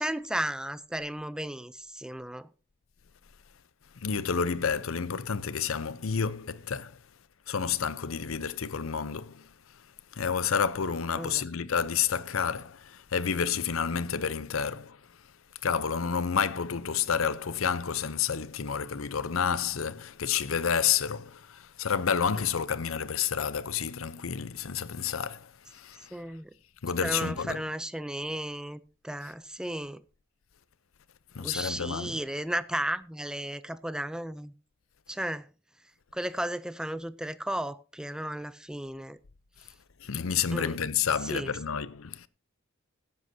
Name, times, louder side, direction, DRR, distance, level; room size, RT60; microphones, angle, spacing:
voice 1, 0.0-2.5 11.1-11.4 26.1-26.5 27.0-30.0 31.4-34.5 35.1-35.5 36.1-39.2 40.5-40.8 41.2-41.5, right 1 dB, 5° right, 0.4 m, -34 dB
voice 2, 4.0-7.0 7.5-9.5 10.1-15.0 15.6-26.1 26.8-27.6 31.3-32.2 40.0-42.3, left 7 dB, 80° left, 0.7 m, -30 dB
17.5 x 9.7 x 2.7 m
head